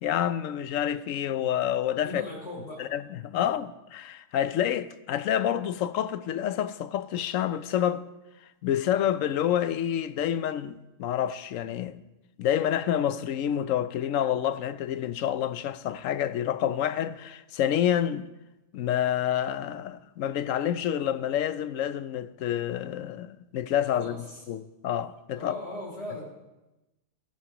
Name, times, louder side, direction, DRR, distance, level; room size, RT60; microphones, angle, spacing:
voice 1, 0.0-2.2 2.8-8.1 8.6-12.0 12.4-18.3 18.7-25.5, left 10 dB, 75° left, 1.0 m, -28 dB
voice 2, 2.0-2.9 3.3-3.5 24.0-24.4 25.3-26.3, left 1 dB, 60° left, 5.0 m, -38 dB
16.5 x 15.5 x 3.0 m
omnidirectional pair, 1.4 m